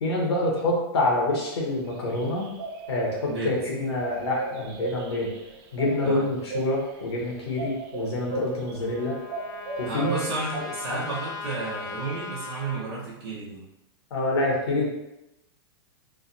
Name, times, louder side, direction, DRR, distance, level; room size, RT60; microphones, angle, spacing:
voice 1, 0.0-2.5 2.9-5.3 5.7-9.1 9.8-10.2 10.9-11.0 14.1-14.9, left 2 dB, 85° left, -2 dB, 1.0 m, -26 dB
sound 1, 1.7-9.0 9.2-10.2, right 4 dB, 40° right, 0.4 m, -37 dB
Trumpet, 8.3-12.8, left 4 dB, 25° left, 0.6 m, -38 dB
voice 2, 9.8-13.6, right 3 dB, 80° right, -6 dB, 0.9 m, -32 dB
3.2 x 2.2 x 2.6 m, 0.93 s
hypercardioid pair, 125°, 13 cm